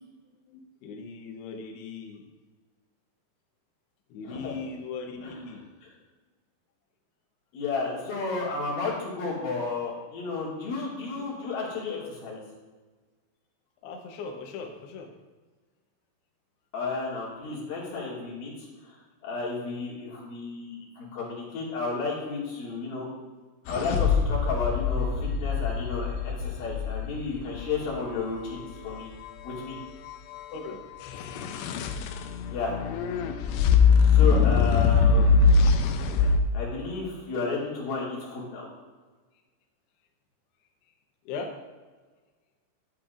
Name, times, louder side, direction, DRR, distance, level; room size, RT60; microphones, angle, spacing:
voice 1, 0.5-2.2 4.1-5.7 13.8-15.1 30.5-30.8 41.3-41.6, left 4 dB, 70° left, 2 dB, 2.8 m, -39 dB
voice 2, 7.5-12.4 16.7-23.1 23.7-29.1 29.4-29.8 32.5-32.8 34.0-35.3 36.5-38.7, left 4 dB, 55° left, -5 dB, 3.7 m, -32 dB
sound 1, 23.7-27.8 31.1-36.4, left 5 dB, 90° left, 2.4 m, -22 dB
11.5 x 9.9 x 2.6 m, 1.3 s
omnidirectional pair, 5.4 m